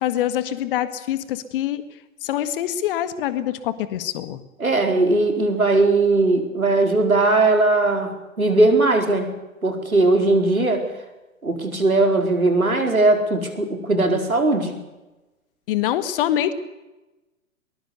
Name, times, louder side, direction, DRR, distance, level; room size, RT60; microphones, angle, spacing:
voice 1, 0.0-1.8 2.2-4.4 15.7-16.5, left 11 dB, 40° left, 12 dB, 1.8 m, -24 dB
voice 2, 4.6-9.3 9.6-10.8 11.4-14.7, right 2 dB, 80° right, 5 dB, 4.7 m, -19 dB
22.5 x 21.0 x 6.8 m, 1.0 s
figure-of-eight pair, 115°, 42 cm